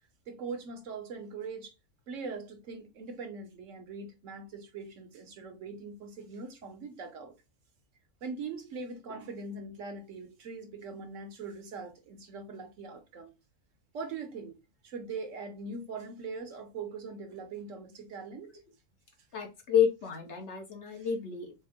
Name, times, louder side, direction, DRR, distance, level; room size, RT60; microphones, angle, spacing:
voice 1, 0.3-1.7 2.1-7.3 8.2-13.3 13.9-14.6 14.8-18.5 20.9-21.1, right 4 dB, 65° right, 1.0 m, -41 dB
voice 2, 19.3-21.5, left 8 dB, 60° left, 1.0 m, -29 dB
4.3 x 2.0 x 3.4 m
omnidirectional pair, 1.5 m